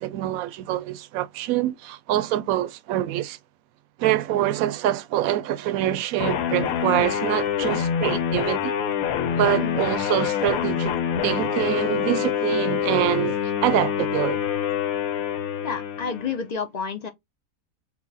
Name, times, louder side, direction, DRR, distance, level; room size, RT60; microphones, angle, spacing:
voice 1, 0.0-3.4 4.0-8.7 9.4-10.9 11.2-13.4 13.6-14.4, right 13 dB, 80° right, 1.0 m, -25 dB
sound 1, 6.2-16.4, left 8 dB, 90° left, 1.1 m, -26 dB
voice 2, 15.6-17.1, left 6 dB, 60° left, 0.4 m, -30 dB
4.5 x 2.1 x 4.0 m
omnidirectional pair, 1.5 m